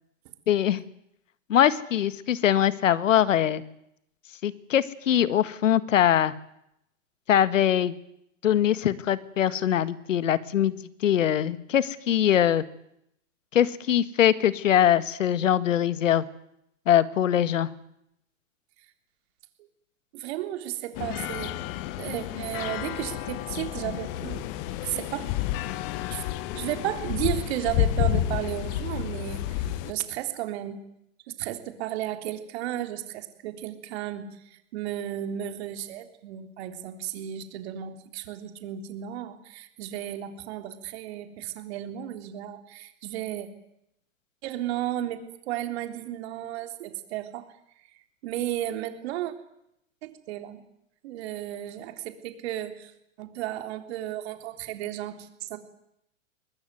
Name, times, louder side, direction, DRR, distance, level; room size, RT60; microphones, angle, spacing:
voice 1, 0.5-0.8 1.5-3.6 4.4-6.3 7.3-7.9 8.4-10.7 11.0-12.6 13.5-16.2 16.9-17.7, left 10 dB, 70° left, 15 dB, 1.8 m, -22 dB
voice 2, 20.1-21.5 22.0-24.5 24.8-25.3 26.1-26.2 26.5-30.8 31.3-43.5 44.4-47.5 48.2-49.3 50.0-50.6 51.0-52.9 53.2-55.6, right 12 dB, 55° right, 8 dB, 3.8 m, -34 dB
sound 1, 20.9-29.9, left 13 dB, 45° left, 1.9 m, -30 dB
23.5 x 20.5 x 9.5 m, 0.78 s
hypercardioid pair, 115°, 39 cm